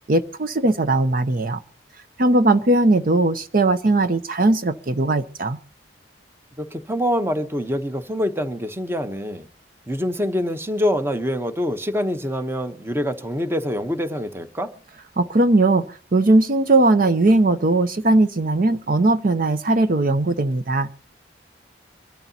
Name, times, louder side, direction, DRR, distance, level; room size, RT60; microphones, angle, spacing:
voice 1, 0.1-1.6 2.2-5.6 15.2-20.9, right 2 dB, 50° right, 11 dB, 0.7 m, -19 dB
voice 2, 6.6-9.5 9.9-14.7, equal, 15° right, 10 dB, 0.9 m, -25 dB
24.5 x 13.0 x 2.8 m, 0.38 s
head